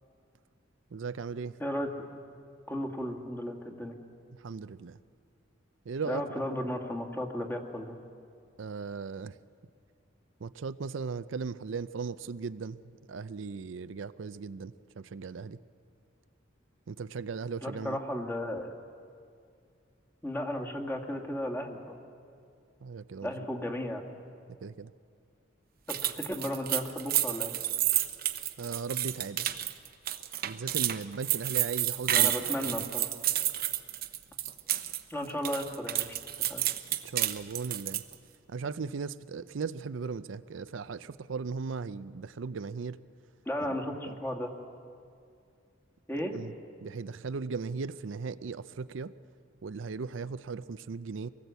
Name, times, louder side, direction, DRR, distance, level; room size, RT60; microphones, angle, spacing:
voice 1, 0.9-1.6 4.4-5.0 5.9-6.2 8.6-9.4 10.4-12.8 13.1-15.6 16.9-18.0 22.8-23.5 24.6-24.9 28.6-29.5 30.5-32.9 37.0-38.0 38.5-43.0 44.1-44.2 46.3-46.5 46.8-49.1 49.6-51.3, right 5 dB, 75° right, 13 dB, 0.5 m, -37 dB
voice 2, 1.6-1.9 2.7-3.9 6.1-7.9 17.6-18.8 20.2-22.0 23.2-24.1 25.9-27.5 32.1-33.1 35.1-36.1 36.5-36.6 43.5-44.5 46.1-46.4, left 1 dB, 10° left, 1 dB, 1.8 m, -34 dB
sound 1, 25.9-35.0 35.3-38.1, right 13 dB, 50° right, 0.9 m, -30 dB
24.0 x 18.0 x 8.2 m, 2.4 s
head